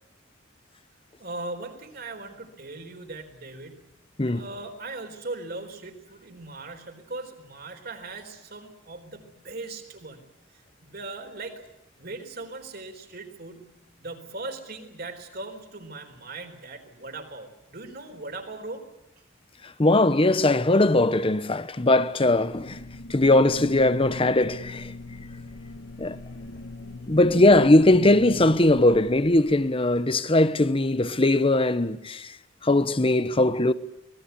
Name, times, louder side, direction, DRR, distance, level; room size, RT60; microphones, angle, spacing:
voice 1, 1.2-3.9 4.3-10.2 10.8-11.6 12.0-18.8 26.4-26.5 27.2-27.6, right 2 dB, 50° right, 4.1 m, -39 dB
voice 2, 19.6-22.8 23.1-24.9 26.0-26.2 27.1-32.4 32.6-33.7, left 2 dB, 30° left, 1.0 m, -20 dB
sound 1, 22.5-29.7, left 2 dB, 65° left, 1.5 m, -40 dB
25.0 x 19.5 x 8.2 m
head